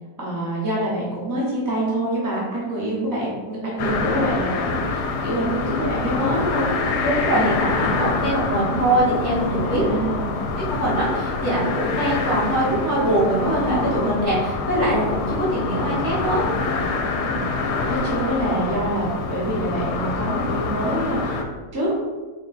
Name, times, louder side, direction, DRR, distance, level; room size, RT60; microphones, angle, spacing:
voice 1, 0.2-6.7 9.6-10.4 14.0-14.2 17.2-17.5 17.9-21.4 21.7-21.9, right 1 dB, 15° right, -6 dB, 0.7 m, -26 dB
sound 1, 3.8-21.4, left 3 dB, 85° left, 1.1 m, -26 dB
voice 2, 7.0-9.8 10.7-16.4, right 1 dB, 45° right, -8 dB, 1.5 m, -22 dB
4.3 x 2.3 x 4.1 m, 1.3 s
omnidirectional pair, 1.7 m